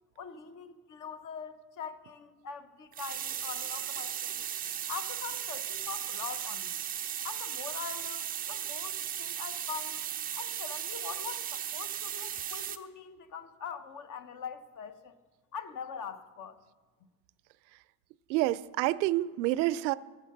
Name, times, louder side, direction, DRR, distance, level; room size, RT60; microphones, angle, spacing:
voice 1, 0.2-4.4 4.9-6.8 7.2-10.0 10.4-15.2 15.5-16.6, left 7 dB, 40° left, 0.9 m, -43 dB
sound 1, 2.9-12.8, right 9 dB, 20° right, 0.4 m, -36 dB
voice 2, 18.3-20.0, right 16 dB, 85° right, 0.6 m, -28 dB
14.5 x 6.6 x 6.5 m
supercardioid pair, 100°, 50 cm